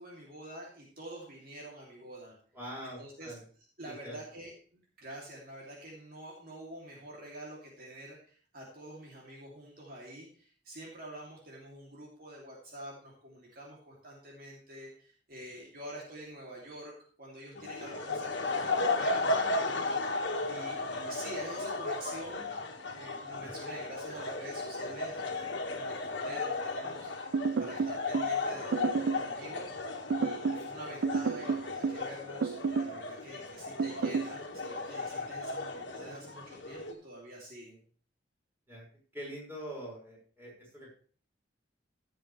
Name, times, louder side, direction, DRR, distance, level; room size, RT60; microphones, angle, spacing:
voice 1, 0.0-2.4 2.8-3.3 3.8-4.5 5.0-16.9 17.2-22.7 22.9-25.4 25.7-27.1 27.6-37.8, right 1 dB, 50° right, -3 dB, 2.8 m, -47 dB
voice 2, 2.5-3.4 3.8-4.2 27.5-27.6 38.7-38.8 39.1-40.9, equal, 10° right, -4 dB, 5.5 m, -44 dB
sound 1, 17.6-36.9, left 3 dB, 75° left, 1.7 m, -35 dB
sound 2, 27.3-28.3 28.7-29.3 30.1-30.7 31.0-32.1 32.4-33.0 33.8-34.3, right 5 dB, 75° right, 0.4 m, -30 dB
15.5 x 7.8 x 3.3 m, 0.44 s
head